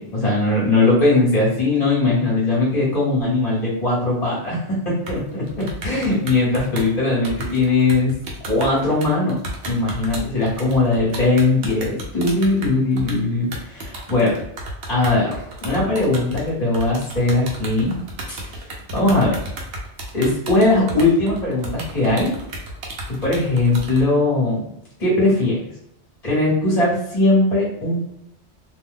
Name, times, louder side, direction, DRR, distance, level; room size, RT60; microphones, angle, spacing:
voice 1, 0.0-8.1 8.4-9.4 9.6-14.4 14.9-18.0 18.3-18.6 18.9-19.3 20.1-22.3 23.1-24.6 25.0-25.6 26.2-28.1, left 2 dB, 35° left, -6 dB, 1.2 m, -20 dB
sound 1, 5.1-24.1, right 1 dB, 70° right, 1.0 m, -33 dB
2.7 x 2.2 x 3.5 m, 0.81 s
omnidirectional pair, 1.2 m